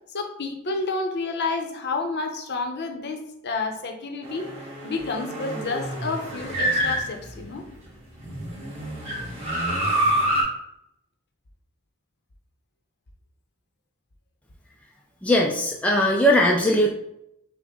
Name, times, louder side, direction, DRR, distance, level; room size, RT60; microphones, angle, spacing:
voice 1, 0.1-4.5 4.8-7.6, left 3 dB, 50° left, 4 dB, 0.7 m, -30 dB
sound 1, 4.2-7.7 8.2-10.4, right 1 dB, 30° right, 1.4 m, -27 dB
voice 2, 15.2-16.9, equal, 5° left, -1 dB, 0.3 m, -19 dB
5.8 x 2.1 x 3.6 m, 0.80 s
head